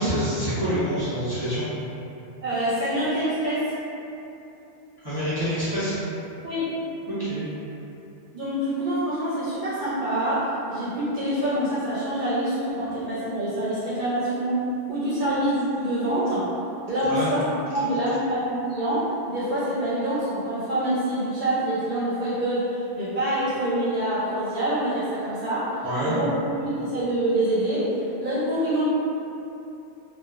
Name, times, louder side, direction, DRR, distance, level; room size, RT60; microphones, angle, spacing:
voice 1, 0.0-1.7 5.0-5.9 7.1-7.5 17.0-17.3 25.8-26.2, equal, 25° left, -14 dB, 0.8 m, -26 dB
voice 2, 2.4-3.7 6.4-6.8 8.3-14.6 14.9-16.5 16.9-17.4 17.7-25.7 26.0-26.3 26.6-28.8, right 1 dB, 60° right, -10 dB, 0.6 m, -26 dB
2.9 x 2.1 x 2.3 m, 2.9 s
omnidirectional pair, 1.1 m